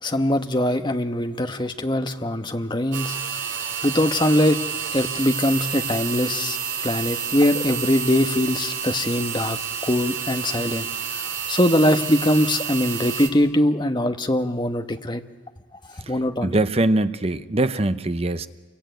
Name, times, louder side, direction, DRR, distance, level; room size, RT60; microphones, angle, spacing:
voice 1, 0.0-3.2 3.8-4.6 4.9-6.6 6.8-11.2 11.5-15.2 15.9-16.6, left 1 dB, 20° left, 7 dB, 1.2 m, -22 dB
sound 1, 2.9-13.3, right 7 dB, 65° right, 2.8 m, -29 dB
voice 2, 16.4-18.5, right 2 dB, 30° right, 11 dB, 0.8 m, -22 dB
27.5 x 23.0 x 9.2 m, 1.3 s
head